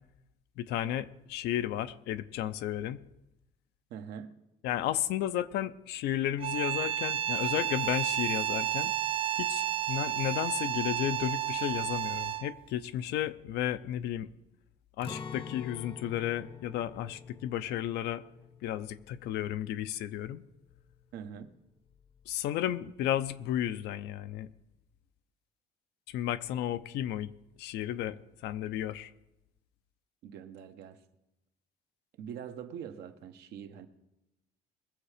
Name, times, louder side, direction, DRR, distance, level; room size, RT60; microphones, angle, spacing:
voice 1, 0.6-3.0 4.6-8.9 9.4-14.3 15.0-18.2 18.6-20.4 22.3-24.5 26.1-27.3 27.6-28.2 28.4-29.1, left 12 dB, 85° left, 0.6 m, -33 dB
voice 2, 3.9-4.3 21.1-21.5 30.2-31.0 32.2-33.9, right 8 dB, 80° right, 1.1 m, -43 dB
sound 1, 6.4-12.6, right 13 dB, 35° right, 0.4 m, -31 dB
Acoustic guitar, 15.0-20.9 21.2-21.4 21.9-22.4, left 5 dB, 35° left, 0.7 m, -47 dB
21.0 x 7.4 x 5.0 m
cardioid pair, 110°, 17 cm